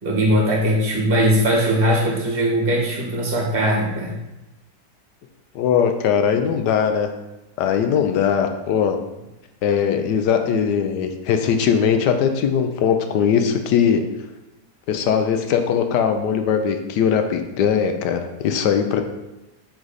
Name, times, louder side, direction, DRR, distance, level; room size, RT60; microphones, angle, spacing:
voice 1, 0.0-4.2, equal, 35° right, -2 dB, 1.6 m, -20 dB
voice 2, 5.5-7.1 7.6-9.0 9.6-14.0 14.9-19.0, left 7 dB, 90° left, 6 dB, 1.3 m, -20 dB
7.8 x 3.9 x 4.1 m, 1.0 s
omnidirectional pair, 1.8 m